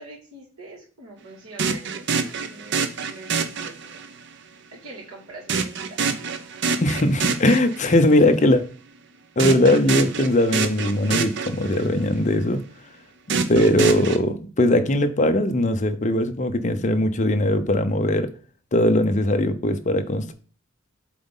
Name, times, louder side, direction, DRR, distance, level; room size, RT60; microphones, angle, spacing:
voice 1, 0.0-4.0 4.7-6.4, right 2 dB, 80° right, 3.1 m, -44 dB
sound 1, 1.6-4.2 5.5-8.1 9.4-12.1 13.3-14.2, right 5 dB, 55° right, 0.7 m, -26 dB
voice 2, 6.8-8.6 9.4-12.6 13.3-18.3 18.7-20.3, left 1 dB, 35° left, 0.7 m, -20 dB
7.7 x 4.0 x 3.7 m
head